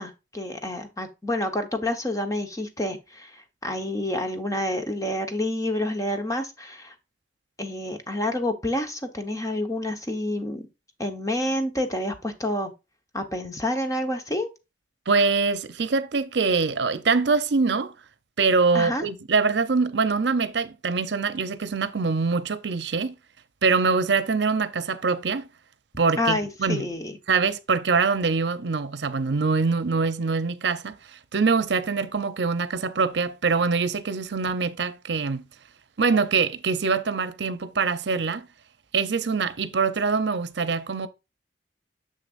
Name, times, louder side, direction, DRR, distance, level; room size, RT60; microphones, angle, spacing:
voice 1, 0.0-6.9 7.6-10.6 11.0-12.7 13.1-14.5 18.7-19.0 26.2-27.2, left 1 dB, 20° left, 1.1 m, -28 dB
voice 2, 15.1-17.9 18.4-23.1 23.6-25.5 26.0-26.9 27.3-35.4 36.0-38.5 38.9-41.1, right 4 dB, 70° right, 0.7 m, -24 dB
6.8 x 6.6 x 2.5 m
head